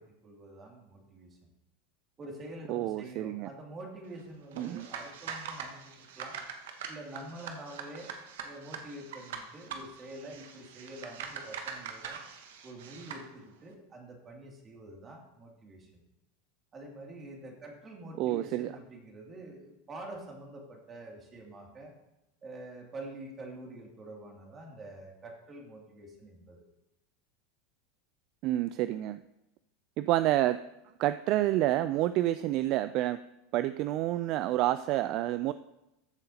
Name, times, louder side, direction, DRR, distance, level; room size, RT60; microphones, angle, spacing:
voice 1, 0.0-1.5 2.2-6.4 6.9-12.2 12.6-16.0 16.7-21.9 22.4-26.7, right 1 dB, 25° right, 0 dB, 2.6 m, -46 dB
voice 2, 2.7-3.5 4.6-4.9 18.2-18.7 28.4-29.2 30.0-30.6 31.0-33.2 33.5-35.5, right 14 dB, 50° right, 13 dB, 0.3 m, -28 dB
sound 1, 4.5-13.3, right 6 dB, 80° right, 1.1 m, -43 dB
14.0 x 7.6 x 2.9 m, 0.90 s
supercardioid pair, 115°, 0 cm